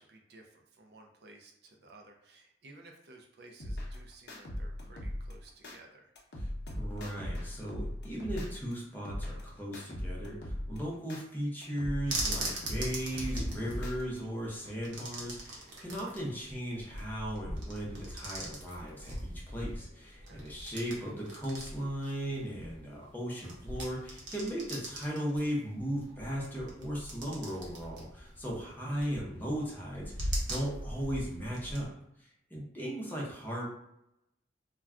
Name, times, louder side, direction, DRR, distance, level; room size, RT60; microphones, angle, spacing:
voice 1, 0.0-6.1 19.6-19.8 20.3-20.8, right 2 dB, 60° right, 2 dB, 0.4 m, -56 dB
sound 1, 3.6-5.8 6.2-8.7 9.0-11.2 11.6-14.2, left 1 dB, 60° left, 0.6 m, -39 dB
voice 2, 6.4-31.9 32.2-33.7, equal, 10° left, -5 dB, 0.7 m, -37 dB
sound 2, 12.1-31.9, right 1 dB, 80° right, 0.8 m, -41 dB
2.2 x 2.2 x 3.5 m, 0.79 s
head